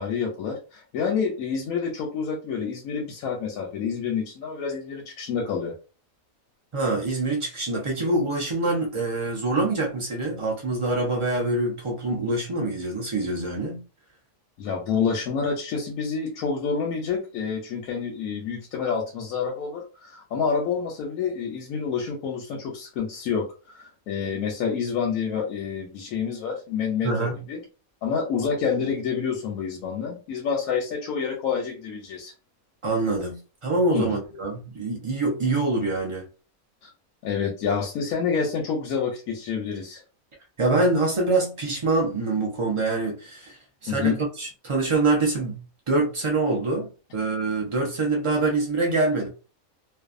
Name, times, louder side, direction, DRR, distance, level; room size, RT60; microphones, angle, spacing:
voice 1, 0.0-5.7 14.6-27.6 28.0-32.3 33.9-34.2 36.8-36.9 37.2-40.0 43.9-44.2, left 6 dB, 90° left, 1.1 m, -28 dB
voice 2, 6.7-13.8 27.0-27.4 32.8-36.2 40.6-43.6 43.8-44.1 44.4-45.6 45.9-49.3, right 2 dB, 40° right, 0.4 m, -25 dB
2.6 x 2.2 x 2.4 m
omnidirectional pair, 1.5 m